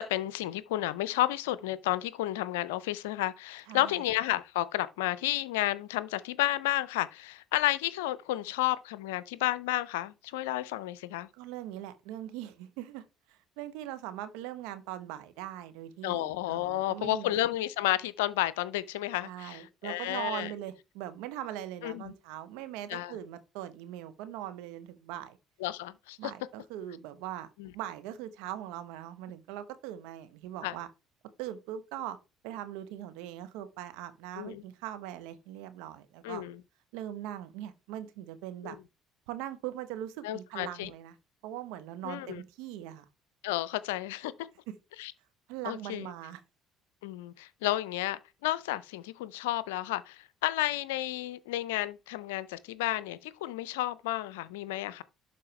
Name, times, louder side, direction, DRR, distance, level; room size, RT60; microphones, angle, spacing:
voice 1, 0.0-11.3 16.0-20.5 21.8-22.1 22.9-23.1 25.6-26.3 27.6-27.7 30.6-30.7 34.4-34.6 36.2-36.6 38.6-38.8 40.2-40.9 42.0-42.4 43.4-44.5 45.0-45.1 45.6-46.1 47.0-55.0, left 15 dB, 80° left, 0.5 m, -32 dB
voice 2, 3.7-4.0 11.3-17.3 19.2-25.4 26.2-30.9 31.4-32.2 32.4-36.4 36.9-38.8 39.3-41.1 41.4-43.1 44.7-44.8 45.5-46.4, right 12 dB, 75° right, 1.0 m, -41 dB
11.5 x 4.2 x 3.2 m
hypercardioid pair, 60°, 0 cm